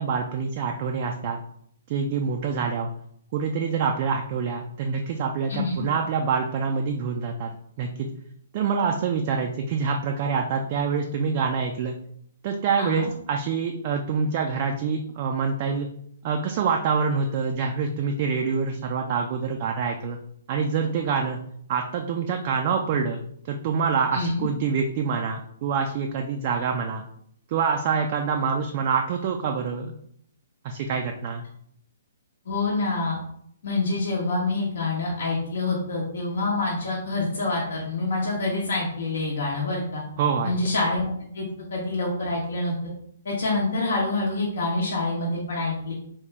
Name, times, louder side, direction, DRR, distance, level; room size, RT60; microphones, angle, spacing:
voice 1, 0.0-1.4 1.9-2.9 3.3-7.5 7.8-8.1 8.5-12.0 12.4-15.9 16.2-20.2 20.5-21.4 21.7-27.0 27.5-29.9 30.6-31.4 40.2-40.5, right 5 dB, 40° right, 2 dB, 0.3 m, -26 dB
voice 2, 5.5-5.8 12.8-13.1 24.1-24.5 32.5-33.2 33.6-40.0 40.4-42.8 43.2-45.9, left 2 dB, 55° left, -4 dB, 0.9 m, -26 dB
3.5 x 2.9 x 3.2 m, 0.68 s
figure-of-eight pair, 120°, 0 cm